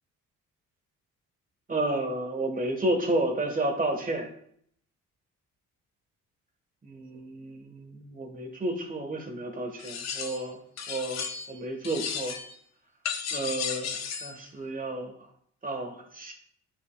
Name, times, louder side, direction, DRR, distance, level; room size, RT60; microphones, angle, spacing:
voice 1, 1.7-4.3 6.8-10.6 10.9-12.3 13.3-15.1 15.6-16.3, right 1 dB, 25° right, 3 dB, 1.7 m, -31 dB
sound 1, 9.8-10.5 10.8-11.6 11.8-12.6 13.0-14.4, left 7 dB, 60° left, 0.8 m, -34 dB
9.6 x 5.7 x 2.5 m, 0.67 s
cardioid pair, 90°, 30 cm